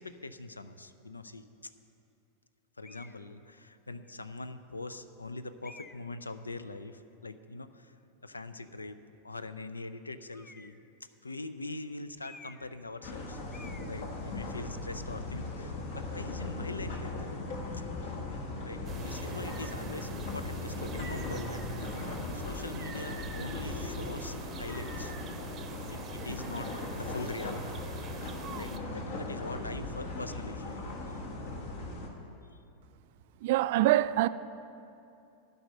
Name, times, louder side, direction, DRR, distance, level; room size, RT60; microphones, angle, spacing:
voice 1, 0.0-1.4 2.8-7.9 8.2-9.0 9.2-10.8 11.2-17.4 17.7-17.8 18.6-25.1 25.9-27.8 28.6-30.8 32.5-32.6, left 3 dB, 80° left, 0.5 m, -43 dB
sound 1, 2.8-3.2 4.0-4.1 5.6-6.2 10.3-10.9 12.2-12.8 13.1-13.2 13.5-13.9, left 3 dB, 15° left, 0.4 m, -52 dB
sound 2, 13.0-32.1, left 2 dB, 50° left, 1.4 m, -38 dB
sound 3, 18.8-28.8, right 6 dB, 30° right, 0.7 m, -46 dB
voice 2, 33.4-34.3, right 15 dB, 50° right, 0.3 m, -24 dB
12.0 x 5.5 x 9.0 m
figure-of-eight pair, 90°, 0 cm